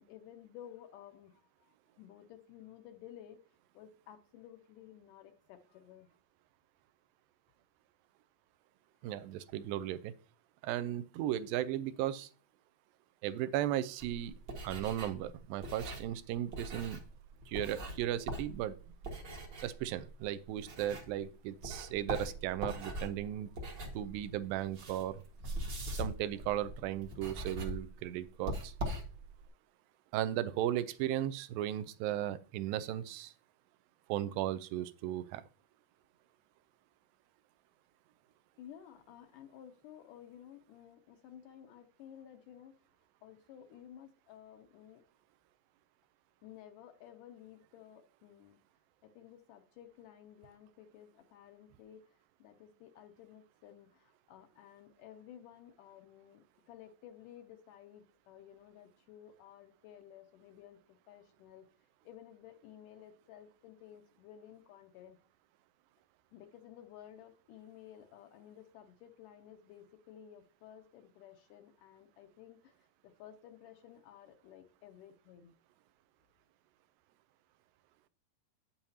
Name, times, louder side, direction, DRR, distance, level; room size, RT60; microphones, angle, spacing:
voice 1, 0.0-3.4 3.7-6.1 38.6-42.8 43.2-45.0 46.4-48.6 49.0-61.7 62.0-65.2 66.3-75.5, left 10 dB, 75° left, 7 dB, 2.1 m, -54 dB
voice 2, 9.0-10.1 10.6-12.3 13.2-14.3 14.6-17.0 17.5-18.7 19.6-23.5 23.9-25.2 25.9-28.7 30.1-33.3 34.1-35.4, right 12 dB, 85° right, 14 dB, 2.4 m, -36 dB
sound 1, 14.0-21.3 21.6-29.5, right 1 dB, 50° right, 1.3 m, -42 dB
9.1 x 8.7 x 2.8 m, 0.37 s
omnidirectional pair, 4.1 m